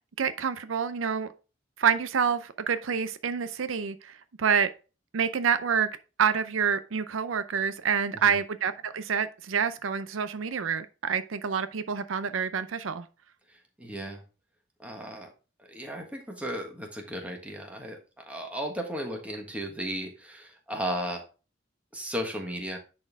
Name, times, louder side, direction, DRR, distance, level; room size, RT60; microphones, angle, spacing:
voice 1, 0.2-1.3 1.8-4.7 5.1-5.9 6.2-13.1, right 6 dB, 75° right, 0.5 m, -27 dB
voice 2, 13.5-14.2 14.8-15.3 15.6-21.2 21.9-22.8, equal, 5° right, 1.5 m, -35 dB
9.9 x 4.3 x 3.5 m
head